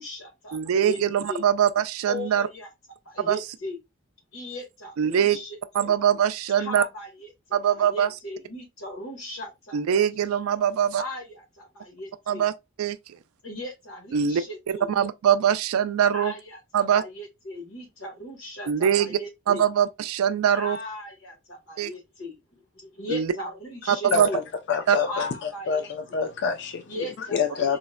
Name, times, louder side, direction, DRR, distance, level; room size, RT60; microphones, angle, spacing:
voice 1, 0.0-1.0 1.3-1.4 2.0-2.7 3.0-3.8 4.3-5.9 6.6-9.8 11.0-12.4 13.4-14.9 16.1-19.7 20.5-24.4 25.0-25.9 26.9-27.8, left 1 dB, 75° left, 1.2 m, -37 dB
voice 2, 0.5-2.5 3.3-3.4 5.0-5.4 5.7-6.8 7.5-8.1 9.7-11.0 12.3-12.5 12.8-13.0 14.1-14.4 14.9-16.3 16.7-17.0 18.7-19.2 19.5-20.8 21.8-21.9 23.1-23.3 23.9-24.3 24.9-25.0, right 9 dB, 85° right, 0.3 m, -22 dB
voice 3, 24.1-24.4 24.7-27.8, left 6 dB, 55° left, 0.4 m, -27 dB
3.9 x 2.1 x 2.2 m
head